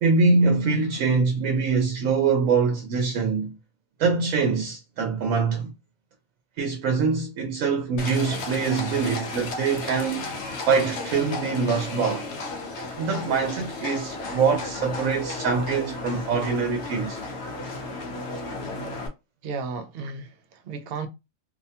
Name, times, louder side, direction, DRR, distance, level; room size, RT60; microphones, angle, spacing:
voice 1, 0.0-3.6 4.0-5.7 6.6-10.3 10.7-12.3 13.0-17.2, right 4 dB, 80° right, 1.0 m, -24 dB
Livestock farm animals working animals, 8.0-19.1, left 3 dB, 65° left, 0.8 m, -34 dB
voice 2, 19.4-21.1, right 4 dB, 60° right, 0.6 m, -34 dB
2.7 x 2.1 x 2.7 m
omnidirectional pair, 1.4 m